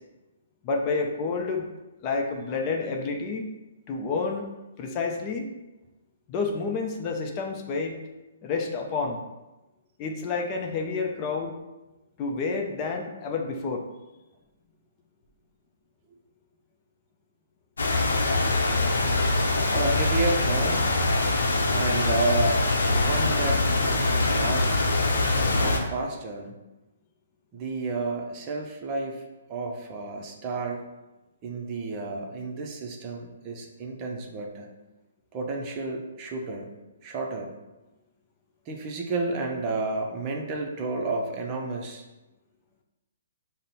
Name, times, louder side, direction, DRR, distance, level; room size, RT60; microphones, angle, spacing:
voice 1, 0.6-1.7 2.0-3.5 3.9-4.5 4.8-5.5 6.3-8.0 8.4-9.2 10.0-11.5 12.2-13.8, left 4 dB, 30° left, 2 dB, 0.5 m, -29 dB
sound 1, 17.8-25.8, left 2 dB, 75° left, 0.7 m, -23 dB
voice 2, 19.7-20.9 21.7-22.6 22.9-23.6 24.3-24.9 25.6-26.5 27.5-29.2 29.5-30.8 31.4-34.7 35.3-36.7 37.0-37.5 38.7-42.0, right 3 dB, 30° right, 1 dB, 0.7 m, -31 dB
5.3 x 2.1 x 4.0 m, 1.0 s
hypercardioid pair, 135°, 0 cm